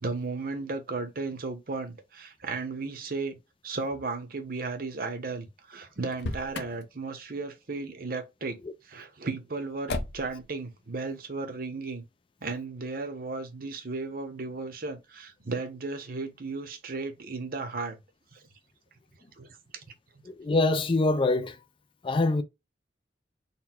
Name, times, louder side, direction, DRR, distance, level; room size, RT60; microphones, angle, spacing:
voice 1, 0.0-3.4 3.6-8.6 8.8-12.0 12.4-18.0 18.3-18.4 19.4-19.5 19.7-19.8, right 3 dB, 55° right, 0.8 m, -35 dB
Motor vehicle (road), 6.1-6.8 9.9-10.4, left 2 dB, 75° left, 0.7 m, -34 dB
voice 2, 20.2-21.6 22.0-22.4, left 2 dB, 30° left, 0.4 m, -24 dB
4.1 x 2.2 x 4.2 m
head